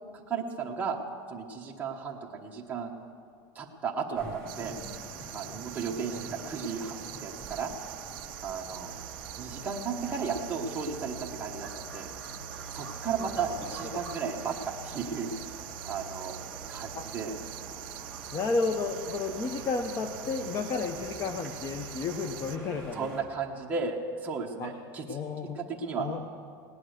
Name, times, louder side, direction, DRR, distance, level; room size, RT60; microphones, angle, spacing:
voice 1, 0.3-1.0 1.3-2.9 3.5-4.8 5.3-6.9 7.2-7.7 8.4-8.9 9.4-11.7 11.9-12.1 12.7-14.6 14.8-15.3 15.9-16.4 16.7-17.3 22.9-25.2 25.6-26.1, right 5 dB, 15° right, -2 dB, 1.2 m, -34 dB
sound 1, 4.1-23.2, right 2 dB, 5° left, 1.6 m, -45 dB
sound 2, 4.5-22.6, right 18 dB, 75° right, 0.4 m, -44 dB
voice 2, 5.9-6.2 13.2-13.5 13.9-14.0 16.9-17.1 18.3-23.1 24.6-24.7 25.1-25.6 26.0-26.2, left 4 dB, 25° left, 7 dB, 0.6 m, -32 dB
18.0 x 9.8 x 6.5 m, 2.4 s
supercardioid pair, 160°, 12 cm